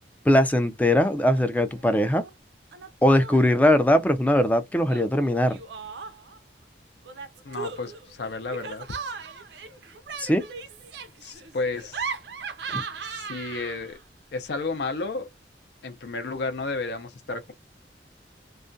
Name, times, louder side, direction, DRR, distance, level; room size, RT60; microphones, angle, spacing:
voice 1, 0.3-2.2 3.0-5.6 10.2-10.4 12.7-12.8, left 1 dB, 10° left, 0.3 m, -20 dB
Laughter, 1.0-1.4 1.7-2.3 2.7-3.6 4.9-6.4 7.0-14.0, right 5 dB, 70° right, 0.5 m, -38 dB
voice 2, 7.4-8.9 11.2-12.0 13.0-14.0 14.3-15.3 15.8-17.5, left 3 dB, 65° left, 0.5 m, -32 dB
2.3 x 2.1 x 2.5 m
head